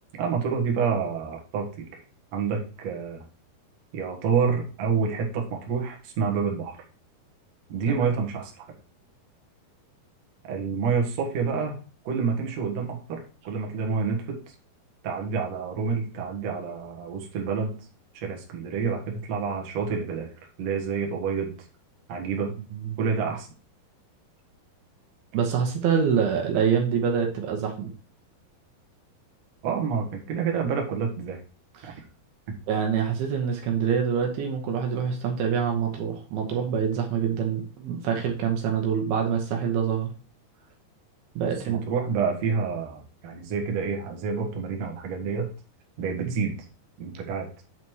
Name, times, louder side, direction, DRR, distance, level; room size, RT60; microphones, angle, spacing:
voice 1, 0.1-2.0 2.3-3.2 3.9-6.8 7.7-8.7 10.4-11.8 12.0-14.4 15.0-17.7 18.1-20.3 20.6-21.5 22.1-22.5 23.0-23.5 29.6-31.4 31.9-32.0 41.7-45.5 46.0-46.5 47.0-47.5, right 5 dB, 50° right, 0 dB, 2.3 m, -28 dB
voice 2, 25.3-27.9 31.8-32.0 32.7-40.1 41.4-41.8, right 7 dB, 75° right, 2 dB, 2.8 m, -25 dB
9.0 x 4.2 x 4.6 m, 0.37 s
omnidirectional pair, 4.6 m